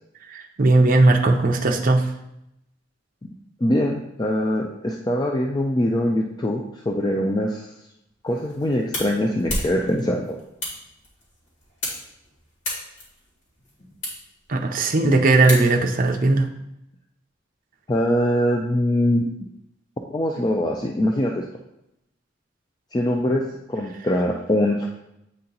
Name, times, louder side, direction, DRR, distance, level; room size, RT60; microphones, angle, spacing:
voice 1, 0.3-2.1 14.5-16.5, right 2 dB, 45° right, 4 dB, 0.6 m, -18 dB
voice 2, 3.6-7.7 8.2-10.4 17.9-19.3 20.1-21.4 22.9-23.4 23.7-24.9, left 1 dB, 20° left, 0 dB, 0.4 m, -23 dB
sound 1, 8.3-16.1, left 1 dB, 85° left, 2.3 m, -35 dB
8.5 x 2.9 x 3.9 m, 0.83 s
head